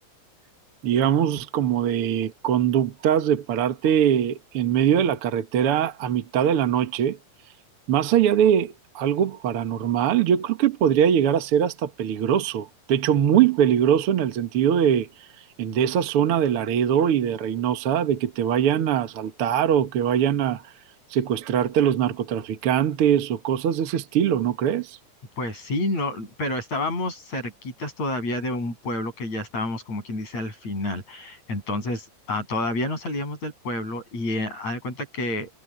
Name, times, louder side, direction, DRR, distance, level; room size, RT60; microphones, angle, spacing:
voice 1, 0.8-7.2 7.9-15.3 15.6-20.6 21.1-25.0, right 9 dB, 60° right, 1.6 m, -22 dB
voice 2, 25.4-35.5, left 2 dB, 50° left, 9.3 m, -29 dB
omnidirectional pair, 3.9 m